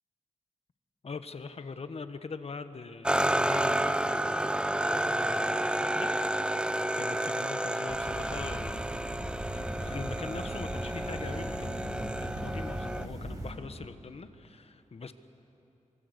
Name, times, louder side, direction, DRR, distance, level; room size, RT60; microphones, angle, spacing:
voice 1, 1.0-8.8 9.5-15.1, left 4 dB, 50° left, 9 dB, 1.2 m, -42 dB
sound 1, 3.0-13.1, right 1 dB, 5° right, 0.5 m, -31 dB
sound 2, 7.9-13.5, right 1 dB, 25° right, 5.1 m, -38 dB
26.0 x 24.0 x 8.1 m, 2.9 s
wide cardioid pair, 130°, 13 cm